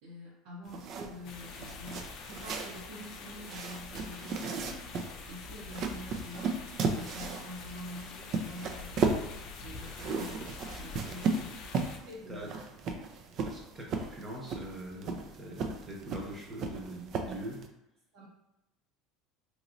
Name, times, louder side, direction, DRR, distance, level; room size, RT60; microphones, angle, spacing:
voice 1, 0.0-4.8 5.3-6.6 6.9-9.2 9.6-10.4 10.8-11.5 12.1-12.5 18.1-18.3, left 1 dB, 75° right, -7 dB, 1.0 m, -46 dB
sound 1, 0.7-17.7, right 4 dB, 50° right, 0.4 m, -36 dB
sound 2, 1.2-12.0, left 5 dB, 60° left, 0.4 m, -45 dB
voice 2, 12.3-12.6 13.4-17.6, right 1 dB, 25° right, -1 dB, 0.9 m, -43 dB
3.0 x 2.8 x 2.6 m, 0.91 s
supercardioid pair, 120°, 0 cm